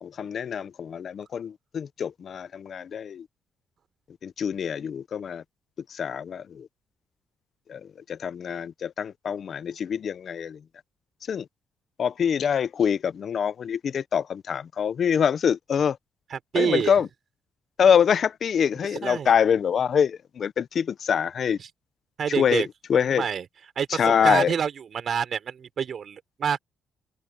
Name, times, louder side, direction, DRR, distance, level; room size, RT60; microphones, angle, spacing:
voice 1, 0.0-3.3 4.2-5.4 5.9-6.7 7.7-7.8 8.1-10.6 11.3-11.5 12.0-16.0 16.6-17.1 17.8-21.6 22.4-23.2 23.9-24.5, left 7 dB, 55° left, 0.8 m, -25 dB
voice 2, 16.3-16.9 19.0-19.3 21.6-21.7 22.2-22.7 22.9-23.4 23.8-26.6, right 7 dB, 55° right, 4.6 m, -27 dB
open air
cardioid pair, 90°, 0 cm